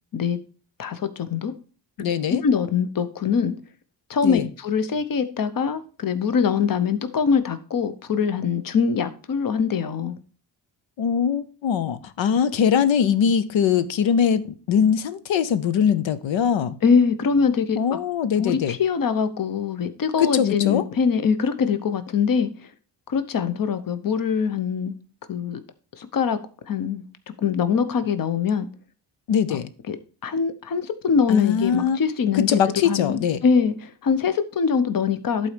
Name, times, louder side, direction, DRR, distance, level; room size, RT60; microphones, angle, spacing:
voice 1, 0.8-1.5 2.3-3.5 4.1-10.1 16.8-18.0 18.4-22.5 23.1-24.9 25.3-25.6 26.0-26.4 26.7-27.0 27.4-28.7 29.9-30.0 30.2-32.6 32.8-35.5, left 6 dB, 50° left, 0.9 m, -23 dB
voice 2, 2.0-2.4 4.2-4.5 11.0-16.8 17.7-18.8 20.2-20.8 29.3-29.7 31.3-32.0 32.3-33.4, left 7 dB, 90° left, 0.8 m, -22 dB
11.5 x 4.3 x 5.1 m
wide cardioid pair, 120°, 44 cm